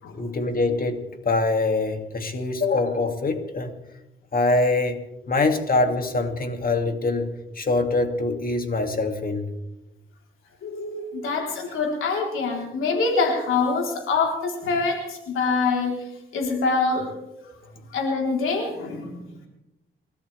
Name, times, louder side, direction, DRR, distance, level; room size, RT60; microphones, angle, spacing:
voice 1, 0.1-3.7 4.3-7.3 7.5-9.5, left 3 dB, 45° left, 5 dB, 2.6 m, -24 dB
voice 2, 10.6-16.0 16.3-17.1 17.9-19.3, left 4 dB, 80° left, 0 dB, 4.0 m, -25 dB
28.5 x 13.5 x 3.5 m, 0.95 s
cardioid pair, 70°, 21 cm